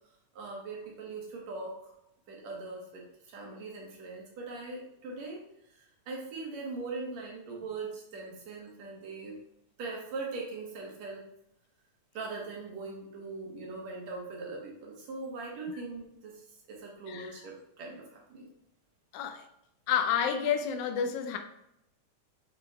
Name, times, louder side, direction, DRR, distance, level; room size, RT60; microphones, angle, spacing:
voice 1, 0.3-1.9 2.3-9.4 9.8-11.2 12.1-18.5, right 3 dB, 70° right, 2.5 m, -41 dB
voice 2, 19.1-19.5 19.9-21.4, left 8 dB, 80° left, 2.0 m, -30 dB
7.1 x 5.8 x 2.3 m
omnidirectional pair, 3.4 m